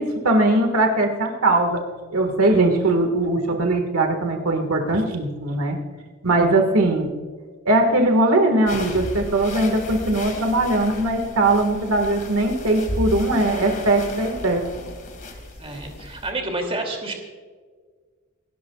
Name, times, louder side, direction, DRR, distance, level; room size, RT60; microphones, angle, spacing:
voice 1, 0.0-1.8 2.1-5.8 6.2-7.1 7.6-14.7, right 2 dB, 80° right, 4 dB, 1.8 m, -20 dB
sound 1, 8.7-16.3, left 1 dB, 40° left, 2.5 m, -34 dB
voice 2, 15.6-17.1, right 2 dB, 25° right, 3 dB, 2.7 m, -29 dB
27.0 x 12.5 x 2.4 m, 1.5 s
head